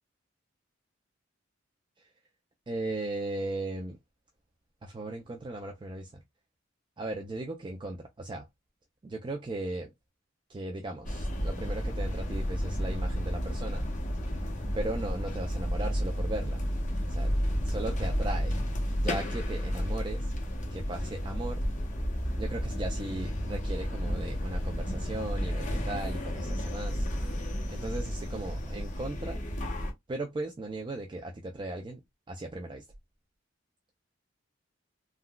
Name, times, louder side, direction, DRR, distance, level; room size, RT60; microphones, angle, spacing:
voice 1, 2.7-4.0 4.8-6.2 7.0-8.5 9.0-9.9 10.5-13.8 14.7-16.6 17.1-17.3 17.6-18.6 19.0-20.3 20.7-21.6 22.4-27.0 27.3-27.4 27.7-29.4 30.1-32.0 32.3-32.8, right 2 dB, 25° right, 0.4 m, -37 dB
sound 1, 11.0-29.9, equal, 40° left, 0.8 m, -32 dB
3.6 x 2.2 x 2.2 m
head